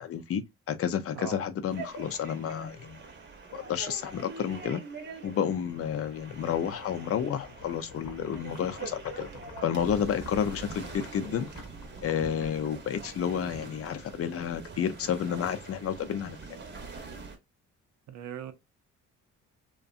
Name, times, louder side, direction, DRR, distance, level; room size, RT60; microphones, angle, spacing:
voice 1, 0.0-3.0 3.5-4.8 5.2-9.3 9.6-11.5 12.0-16.4, left 8 dB, 50° left, 0.5 m, -31 dB
voice 2, 1.1-1.5 18.1-18.5, right 8 dB, 70° right, 0.6 m, -39 dB
sound 1, 1.7-17.4, right 4 dB, 35° right, 0.8 m, -44 dB
sound 2, 6.9-13.0, left 6 dB, 80° left, 0.8 m, -49 dB
2.6 x 2.2 x 2.3 m
cardioid pair, 90°, 30 cm